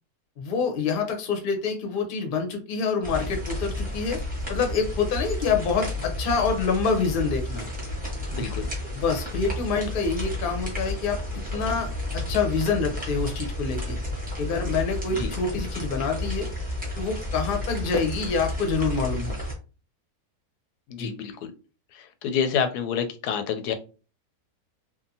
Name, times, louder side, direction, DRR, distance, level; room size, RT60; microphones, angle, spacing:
voice 1, 0.4-4.2 4.5-7.7 8.9-11.2 11.5-14.0 14.4-16.5 17.0-19.4 21.0-21.1, left 5 dB, 50° left, 4 dB, 0.7 m, -26 dB
sound 1, 3.0-19.5, left 1 dB, 5° right, 0.7 m, -32 dB
voice 2, 8.3-8.7 15.2-15.3 20.9-21.5 21.9-23.7, left 7 dB, 85° left, 8 dB, 1.1 m, -28 dB
2.7 x 2.4 x 2.6 m, 0.34 s
omnidirectional pair, 1.6 m